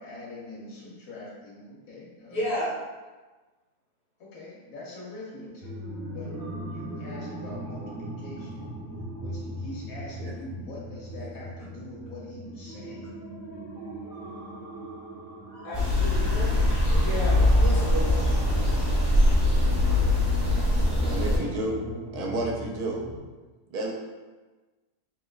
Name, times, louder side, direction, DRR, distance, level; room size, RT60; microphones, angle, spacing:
voice 1, 0.0-2.5 4.2-5.7 6.0-8.7 9.2-13.1 21.2-21.6, left 2 dB, 65° left, -4 dB, 1.2 m, -43 dB
voice 2, 2.3-2.7 15.6-18.2, equal, 80° left, -8 dB, 1.9 m, -32 dB
sound 1, 5.6-23.2, right 1 dB, 45° right, 0.9 m, -39 dB
sound 2, 15.7-21.4, left 1 dB, 25° right, 0.5 m, -22 dB
voice 3, 21.0-21.8 22.1-23.0 23.7-23.9, right 2 dB, 75° right, -1 dB, 1.1 m, -31 dB
3.7 x 2.9 x 2.3 m, 1.3 s
omnidirectional pair, 1.7 m